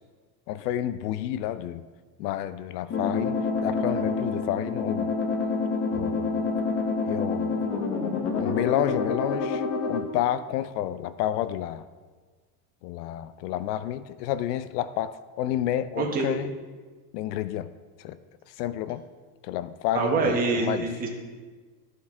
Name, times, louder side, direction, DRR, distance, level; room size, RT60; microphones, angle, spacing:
voice 1, 0.5-1.9 2.2-5.1 5.9-6.4 7.0-7.7 8.1-11.8 12.8-16.5 17.1-17.7 18.0-18.2 18.6-19.0 19.4-20.9, left 12 dB, 85° left, 14 dB, 0.6 m, -30 dB
sound 1, 2.9-10.0, left 4 dB, 30° left, 0.8 m, -27 dB
voice 2, 16.0-16.3 19.9-21.1, right 4 dB, 20° right, 0 dB, 1.0 m, -25 dB
13.0 x 4.6 x 3.6 m, 1.4 s
supercardioid pair, 165°, 46 cm